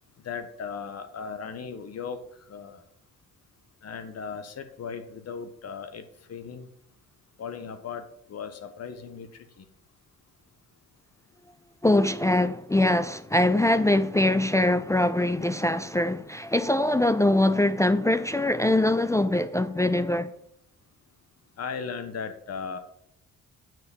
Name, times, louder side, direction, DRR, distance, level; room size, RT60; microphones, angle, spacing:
voice 1, 0.1-2.9 3.8-6.7 7.4-9.7 21.4-22.8, left 6 dB, 55° left, 1.4 m, -37 dB
voice 2, 11.8-20.3, left 1 dB, 10° left, 0.4 m, -23 dB
7.7 x 6.1 x 7.2 m
cardioid pair, 90°, 30 cm